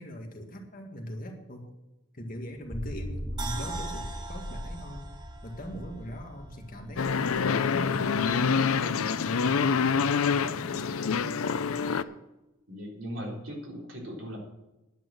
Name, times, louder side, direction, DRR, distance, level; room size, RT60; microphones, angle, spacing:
voice 1, 0.0-1.7 2.1-5.1 5.4-8.8 9.2-11.7, equal, 40° left, 2 dB, 1.9 m, -41 dB
sound 1, 2.6-9.0, equal, 10° left, 5.1 m, -40 dB
sound 2, 3.4-6.6 6.9-7.0, right 4 dB, 20° right, 1.2 m, -42 dB
sound 3, 7.0-12.0, left 5 dB, 85° left, 0.6 m, -26 dB
voice 2, 12.7-14.4, equal, 70° right, -1 dB, 3.6 m, -38 dB
10.5 x 9.0 x 6.4 m, 0.99 s
head